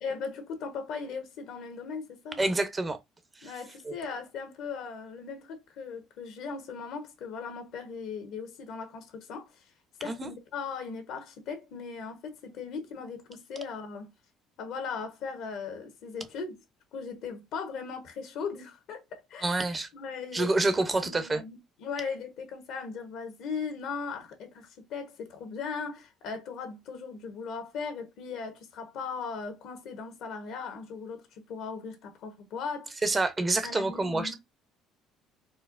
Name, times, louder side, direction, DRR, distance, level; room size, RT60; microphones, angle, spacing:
voice 1, 0.0-2.4 3.4-9.5 10.0-14.1 14.6-16.6 16.9-19.6 19.9-32.9 33.6-34.3, left 5 dB, 70° left, 0.9 m, -38 dB
voice 2, 2.4-3.0 3.4-3.5 3.9-4.0 10.0-10.3 19.4-19.9 20.3-21.4 33.0-34.3, right 2 dB, 25° right, 0.6 m, -27 dB
4.3 x 2.0 x 2.4 m
supercardioid pair, 75°, 0 cm